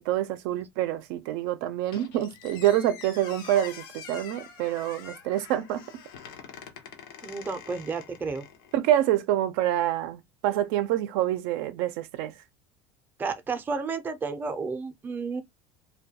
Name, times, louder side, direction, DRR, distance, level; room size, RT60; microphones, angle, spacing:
voice 1, 0.0-5.8 8.7-12.3, right 12 dB, 75° right, 0.4 m, -26 dB
Squeak, 1.9-8.8, left 7 dB, 90° left, 0.6 m, -45 dB
voice 2, 7.2-8.4 13.2-15.4, right 4 dB, 15° right, 0.4 m, -32 dB
2.2 x 2.2 x 2.8 m
cardioid pair, 135°, 11 cm